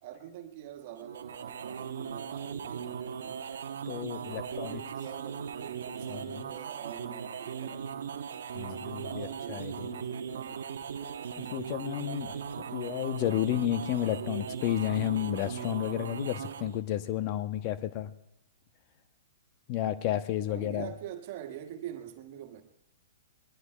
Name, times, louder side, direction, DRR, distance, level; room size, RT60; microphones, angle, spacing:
voice 1, 0.0-3.2 4.2-7.9 8.6-10.6 20.0-20.1 20.5-22.6, right 11 dB, 45° right, 6 dB, 1.7 m, -45 dB
sound 1, 1.0-16.8, right 7 dB, 65° right, 1.0 m, -38 dB
voice 2, 3.9-4.8 6.1-6.4 8.5-9.9 11.4-18.1 19.7-20.9, left 12 dB, 40° left, 12 dB, 0.8 m, -32 dB
22.0 x 21.0 x 2.3 m, 0.80 s
figure-of-eight pair, 115°, 0 cm